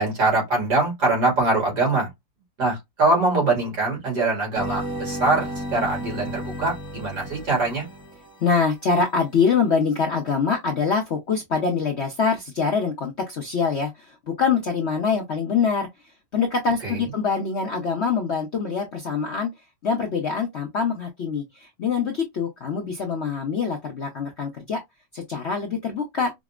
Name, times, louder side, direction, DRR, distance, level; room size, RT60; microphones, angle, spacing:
voice 1, 0.0-2.1 2.6-7.9 16.8-17.1, right 2 dB, 60° right, 2.6 m, -23 dB
sound 1, 4.5-8.8, equal, 20° left, 0.7 m, -33 dB
voice 2, 8.4-15.9 16.3-19.5 19.8-24.8 25.1-26.3, left 5 dB, 55° left, 0.7 m, -24 dB
5.1 x 2.0 x 2.4 m
omnidirectional pair, 2.0 m